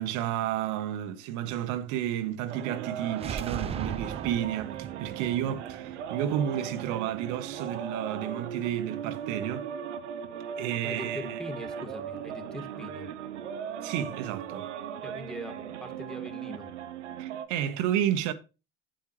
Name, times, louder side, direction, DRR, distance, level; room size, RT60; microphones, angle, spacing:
voice 1, 0.0-9.7 10.6-11.4 13.8-14.7 17.2-18.3, right 11 dB, 60° right, 1.1 m, -31 dB
sound 1, 2.5-17.5, right 8 dB, 85° right, 0.9 m, -38 dB
sound 2, 3.1-7.0, right 6 dB, 20° right, 0.4 m, -39 dB
voice 2, 10.8-13.1 15.0-16.7, left 1 dB, ahead, 2.1 m, -42 dB
9.2 x 8.7 x 3.2 m
hypercardioid pair, 80°, 34 cm